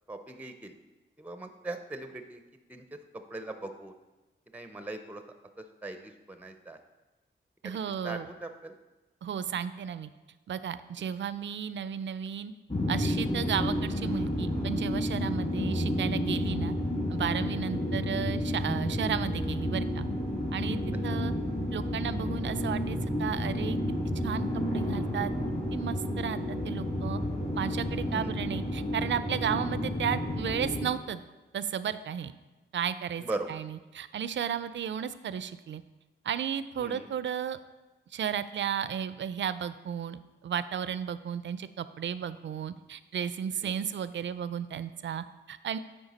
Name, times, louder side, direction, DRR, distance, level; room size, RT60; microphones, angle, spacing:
voice 1, 0.1-0.7 1.2-2.4 2.7-3.0 3.3-3.9 4.5-5.2 5.8-6.8 7.6-7.8 8.0-8.8 11.0-11.2 28.1-28.3 33.2-33.5 36.8-37.1 43.6-43.9, right 2 dB, 5° right, 7 dB, 0.5 m, -40 dB
voice 2, 7.6-8.3 9.2-10.1 10.5-12.5 12.9-16.7 17.1-20.1 20.5-21.3 21.7-23.8 24.2-25.3 25.7-27.2 27.5-31.2 31.5-32.3 32.7-33.2 33.5-35.8 36.2-37.6 38.1-45.8, right 8 dB, 65° right, 14 dB, 0.4 m, -34 dB
sound 1, 12.7-30.9, left 1 dB, 30° left, 1.6 m, -31 dB
8.9 x 4.8 x 4.1 m, 1.1 s
wide cardioid pair, 90°, 21 cm